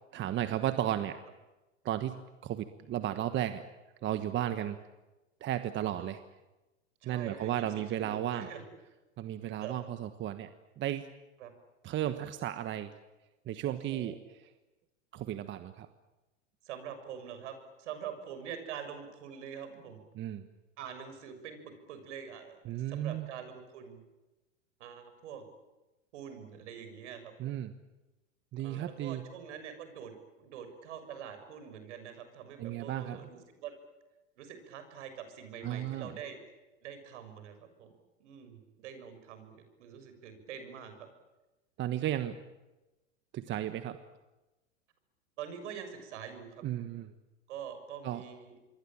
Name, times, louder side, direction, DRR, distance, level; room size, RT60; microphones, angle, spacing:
voice 1, 0.1-1.2 1.8-3.6 4.0-4.8 5.4-6.2 7.0-8.5 9.2-10.5 10.8-11.1 11.8-12.9 13.5-14.2 15.1-15.9 20.1-20.5 22.7-23.3 27.4-27.7 28.5-29.2 32.6-33.2 35.6-36.1 41.8-42.4 43.3-44.0 46.6-47.1 48.0-48.2, right 12 dB, 30° right, 10 dB, 1.3 m, -34 dB
voice 2, 7.0-8.6 9.6-9.8 11.4-11.5 13.6-14.1 16.6-20.0 20.8-24.0 24.8-25.4 26.1-27.6 28.6-33.7 34.4-36.4 36.8-37.9 38.2-41.1 41.9-42.1 45.4-46.6 47.5-48.5, right 8 dB, 65° right, 9 dB, 6.7 m, -45 dB
27.0 x 23.0 x 8.9 m, 1.1 s
hypercardioid pair, 115°, 38 cm